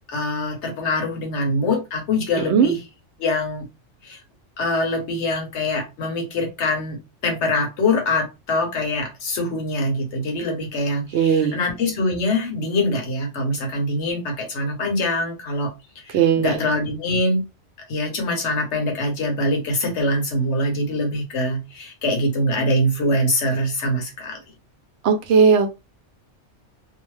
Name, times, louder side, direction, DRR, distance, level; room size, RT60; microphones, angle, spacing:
voice 1, 0.1-2.8 3.2-3.7 4.0-4.2 4.6-15.7 16.0-17.5 17.9-24.4, left 1 dB, 70° left, 1.1 m, -24 dB
voice 2, 11.1-11.6 16.1-16.6 25.0-25.7, right 6 dB, 70° right, 0.8 m, -17 dB
2.8 x 2.0 x 3.1 m
omnidirectional pair, 1.2 m